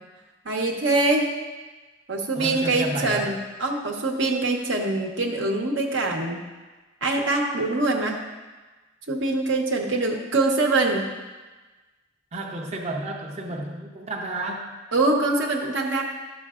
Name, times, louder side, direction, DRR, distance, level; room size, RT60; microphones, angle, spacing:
voice 1, 0.4-1.3 2.1-6.4 7.0-8.2 9.1-11.1 14.9-16.0, right 2 dB, 80° right, 1 dB, 1.0 m, -24 dB
voice 2, 2.3-3.4 12.3-14.8, right 2 dB, 35° right, 0 dB, 0.6 m, -31 dB
12.0 x 6.6 x 2.4 m, 1.2 s
head